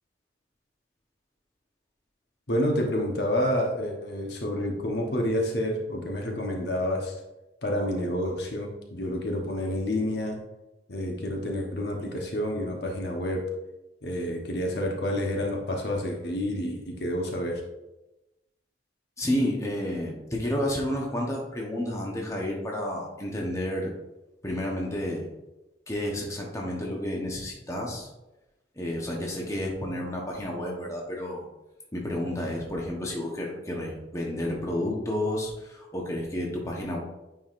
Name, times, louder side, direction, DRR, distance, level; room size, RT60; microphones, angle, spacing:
voice 1, 2.5-7.1 7.6-10.4 10.9-13.5 14.0-17.6, left 1 dB, 60° left, 1 dB, 1.0 m, -29 dB
voice 2, 19.2-23.9 24.4-25.3 25.9-28.1 28.8-31.4 31.9-37.0, left 1 dB, 15° left, -1 dB, 1.0 m, -31 dB
9.0 x 4.8 x 2.5 m, 0.99 s
head